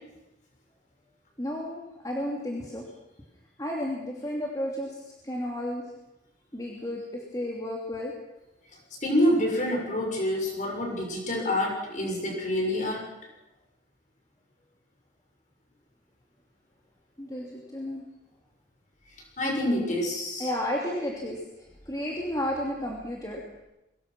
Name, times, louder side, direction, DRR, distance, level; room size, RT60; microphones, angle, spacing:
voice 1, 1.4-2.9 3.6-5.9 6.5-8.2 17.2-18.1 20.4-23.6, left 1 dB, 20° left, -2 dB, 2.8 m, -33 dB
voice 2, 9.0-13.1 19.4-20.5, left 1 dB, 40° left, 0 dB, 6.8 m, -27 dB
23.0 x 20.0 x 6.1 m, 0.95 s
head